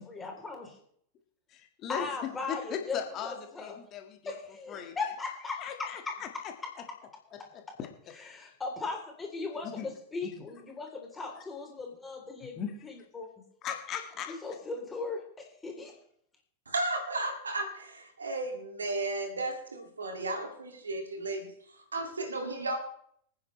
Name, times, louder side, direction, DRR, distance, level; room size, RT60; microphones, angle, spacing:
voice 1, 0.1-0.8 1.9-3.7 4.3-6.2 8.3-13.3 14.4-15.9, left 4 dB, 15° left, 1 dB, 3.4 m, -38 dB
voice 2, 1.5-4.3 4.7-5.0 5.6-6.5 7.3-8.1 9.6-9.9 10.2-10.5 11.4-11.5 12.6-12.8 13.6-14.4, left 8 dB, 35° left, 5 dB, 1.8 m, -39 dB
voice 3, 16.7-22.8, right 2 dB, 75° right, 4 dB, 2.4 m, -34 dB
24.0 x 9.7 x 3.2 m, 0.65 s
figure-of-eight pair, 90°, 0 cm